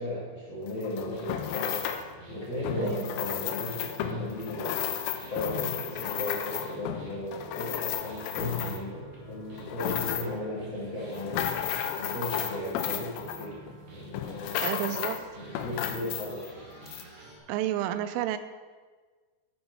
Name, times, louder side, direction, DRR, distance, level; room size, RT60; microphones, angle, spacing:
voice 1, 0.0-4.8 5.3-11.5 11.9-13.6 13.9-16.6, left 1 dB, 70° left, -6 dB, 1.1 m, -36 dB
sound 1, 0.7-2.1 2.6-9.0 9.5-10.5 11.0-13.8 14.1-15.2 15.6-16.5 16.9-17.0, left 9 dB, 90° left, 3.2 m, -33 dB
sound 2, 0.9-17.4, right 2 dB, 55° right, 1.6 m, -50 dB
voice 2, 2.8-3.1 14.6-15.2 17.5-18.4, right 12 dB, 85° right, 11 dB, 3.1 m, -30 dB
12.0 x 6.2 x 5.4 m, 1.4 s
omnidirectional pair, 5.7 m